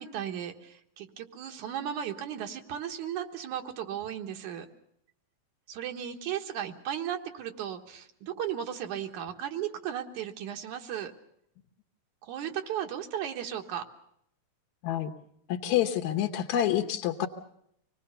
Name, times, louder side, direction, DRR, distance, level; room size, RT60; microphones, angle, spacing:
voice 1, 0.0-4.7 5.7-11.1 12.2-13.9, right 10 dB, 85° right, 4 dB, 2.9 m, -35 dB
voice 2, 15.5-17.3, left 11 dB, 75° left, 4 dB, 2.3 m, -27 dB
25.5 x 19.0 x 6.8 m, 0.74 s
omnidirectional pair, 3.3 m